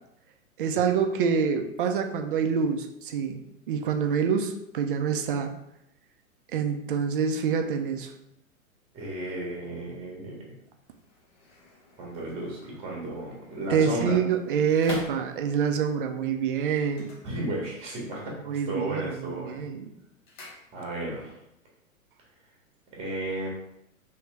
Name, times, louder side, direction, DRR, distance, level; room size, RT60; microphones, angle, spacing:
voice 1, 0.6-5.5 6.5-8.1 13.7-17.1 18.5-19.9, right 6 dB, 40° right, 5 dB, 0.4 m, -26 dB
voice 2, 8.9-10.4 12.0-14.2 17.2-19.7 20.7-21.3 23.0-23.5, right 1 dB, 15° right, -3 dB, 1.0 m, -34 dB
sound 1, 10.8-15.8 16.8-18.0 18.3-18.8 19.1-21.2 21.5-21.6, left 2 dB, 20° left, 0.4 m, -46 dB
3.3 x 2.7 x 3.1 m, 0.82 s
figure-of-eight pair, 110°, 42 cm